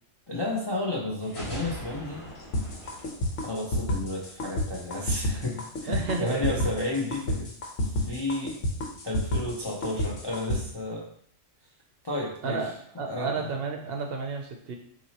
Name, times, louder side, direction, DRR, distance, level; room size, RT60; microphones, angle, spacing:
voice 1, 0.3-2.2 3.4-7.5 8.1-8.5 9.0-11.1 12.0-12.6 13.1-13.5, left 2 dB, 30° left, -3 dB, 0.4 m, -32 dB
sound 1, 1.2-4.1, equal, 55° left, 2.0 m, -41 dB
sound 2, 2.5-10.6, left 1 dB, 85° left, 1.2 m, -29 dB
voice 2, 5.9-6.7 12.4-14.8, right 4 dB, 60° right, 3 dB, 0.7 m, -32 dB
5.7 x 2.7 x 2.8 m, 0.64 s
omnidirectional pair, 1.3 m